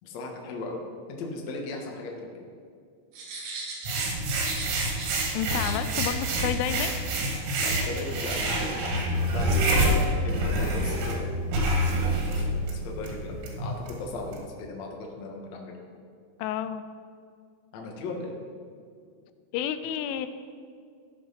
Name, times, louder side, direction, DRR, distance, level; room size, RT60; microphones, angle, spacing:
voice 1, 0.0-0.8 1.1-2.4 7.6-15.7 17.7-18.4, left 2 dB, 55° left, 0 dB, 2.0 m, -38 dB
sound 1, 3.1-5.2 5.5-5.8 6.5-6.6, right 3 dB, 65° right, 4.2 m, -38 dB
sound 2, 3.9-14.4, right 1 dB, 85° right, 4.4 m, -27 dB
voice 2, 5.3-6.9 16.4-16.8 19.5-20.3, left 9 dB, 85° left, 11 dB, 3.1 m, -30 dB
14.5 x 8.0 x 5.8 m, 2.2 s
omnidirectional pair, 5.5 m